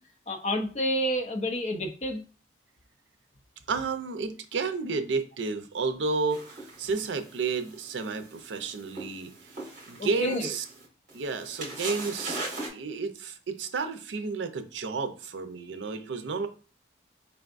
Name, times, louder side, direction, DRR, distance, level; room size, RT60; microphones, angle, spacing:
voice 1, 0.3-2.2 10.0-10.5, equal, 35° left, 5 dB, 0.5 m, -29 dB
voice 2, 3.7-9.3 9.9-10.6 11.1-12.4 12.7-16.5, right 4 dB, 80° right, 9 dB, 0.5 m, -31 dB
sound 1, 6.3-12.7, right 2 dB, 45° right, 1.6 m, -40 dB
4.6 x 3.4 x 2.5 m, 0.36 s
head